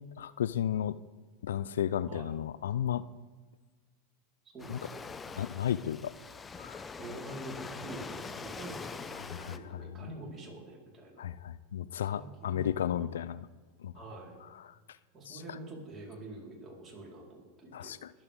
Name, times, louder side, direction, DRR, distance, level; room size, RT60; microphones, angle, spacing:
voice 1, 0.2-1.0 1.4-3.0 4.7-4.8 5.4-6.1 6.6-6.8 9.2-10.1 11.2-13.5 13.8-13.9 14.6-14.7 15.3-15.6 17.7-18.1, left 10 dB, 80° left, 17 dB, 0.4 m, -34 dB
voice 2, 4.5-5.0 7.0-11.4 12.1-12.9 13.9-14.4 15.1-17.9, right 2 dB, 25° right, -3 dB, 4.4 m, -46 dB
Waves surf, 4.6-9.6, left 5 dB, 20° left, 0.7 m, -43 dB
22.0 x 7.9 x 3.7 m, 1.4 s
hypercardioid pair, 100°, 0 cm